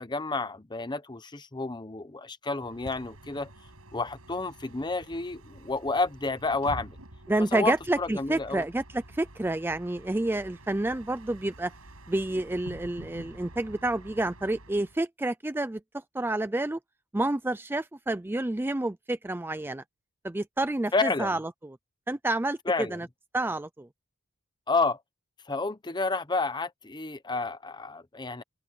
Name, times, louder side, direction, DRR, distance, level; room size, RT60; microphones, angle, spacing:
voice 1, 0.0-3.5 3.9-7.0 7.5-8.6 20.9-21.3 22.7-23.0 24.7-25.0 25.5-28.4, left 3 dB, 20° left, 0.8 m, -30 dB
Bus, 2.6-15.0, right 1 dB, 80° right, 6.0 m, -48 dB
voice 2, 7.3-11.7 12.1-16.8 17.1-19.8 20.2-21.8 22.1-23.1 23.3-23.9, right 2 dB, 10° right, 0.4 m, -29 dB
head